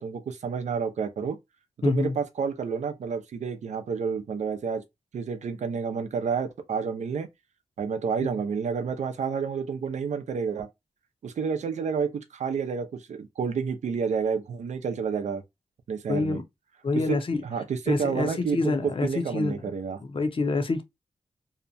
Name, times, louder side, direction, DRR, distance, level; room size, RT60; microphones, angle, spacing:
voice 1, 0.0-1.4 1.8-4.8 5.1-7.3 7.8-10.7 11.2-15.4 15.9-16.4 17.1-17.2 17.4-20.0, right 6 dB, 75° right, 0.5 m, -29 dB
voice 2, 1.8-2.1 16.1-16.4 16.8-17.4 17.9-19.5 20.0-20.8, left 3 dB, 50° left, 0.6 m, -26 dB
2.7 x 2.2 x 2.6 m
cardioid pair, 50°, 12 cm